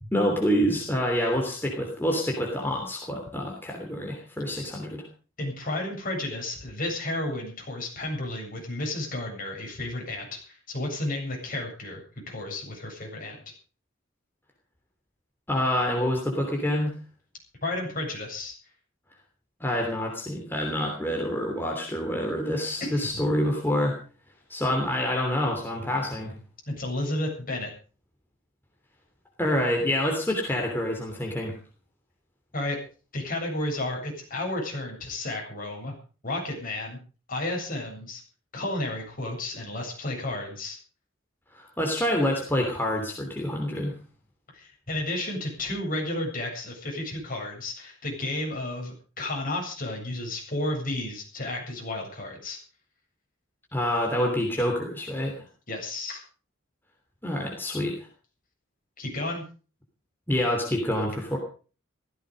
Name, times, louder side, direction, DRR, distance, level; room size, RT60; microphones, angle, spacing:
voice 1, 0.0-5.0 15.5-16.9 19.6-24.0 24.5-26.3 29.4-31.5 41.5-43.9 53.7-55.3 57.2-57.9 60.3-61.4, left 1 dB, 10° left, 1 dB, 3.1 m, -27 dB
voice 2, 5.4-12.0 12.3-13.4 17.6-18.6 22.8-23.2 26.7-27.7 32.5-32.8 33.1-35.9 36.2-37.0 37.3-38.2 38.5-40.8 44.5-52.6 55.7-56.2 59.0-59.5, left 1 dB, 45° left, 0 dB, 7.9 m, -32 dB
16.0 x 15.0 x 5.2 m, 0.38 s
head